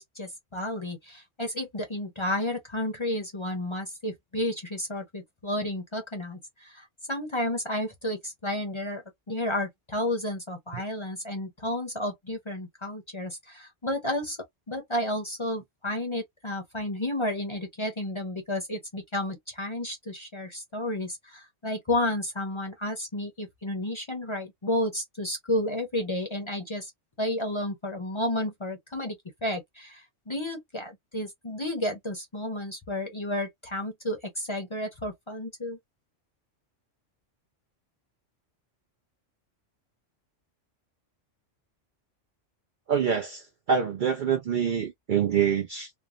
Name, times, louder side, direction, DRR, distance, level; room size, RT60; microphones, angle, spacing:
voice 1, 0.0-14.4 14.7-26.9 27.2-35.8, left 1 dB, 30° left, 0.7 m, -32 dB
voice 2, 42.9-45.9, right 7 dB, 60° right, 0.6 m, -26 dB
3.1 x 2.0 x 2.4 m
omnidirectional pair, 1.3 m